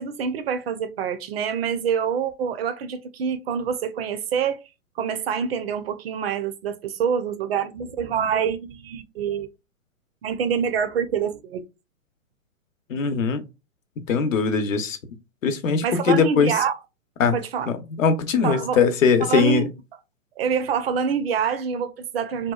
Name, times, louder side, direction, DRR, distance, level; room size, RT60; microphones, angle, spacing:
voice 1, 0.0-4.6 5.0-9.5 10.2-11.6 15.8-16.7 17.3-17.7 18.4-18.8 19.3-19.6 20.4-22.5, right 7 dB, 50° right, 0.5 m, -26 dB
voice 2, 12.9-13.4 14.1-15.0 15.4-16.5 17.2-17.4 17.7-19.6, left 5 dB, 70° left, 0.8 m, -21 dB
2.8 x 2.2 x 2.2 m
hypercardioid pair, 125°, 41 cm